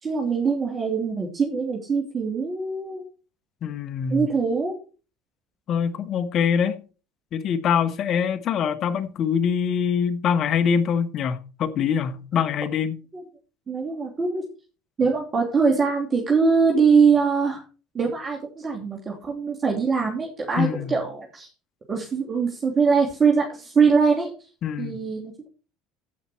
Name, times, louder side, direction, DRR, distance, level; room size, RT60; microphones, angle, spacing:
voice 1, 0.0-3.0 4.1-4.7 13.7-14.4 15.0-17.6 17.9-21.5 21.9-24.3 24.8-25.5, right 5 dB, 30° right, 3.1 m, -22 dB
voice 2, 3.6-4.3 5.7-6.8 7.3-13.0 20.6-21.0 24.6-25.0, left 7 dB, 50° left, 1.4 m, -24 dB
15.0 x 5.9 x 4.5 m
hypercardioid pair, 80°, 0 cm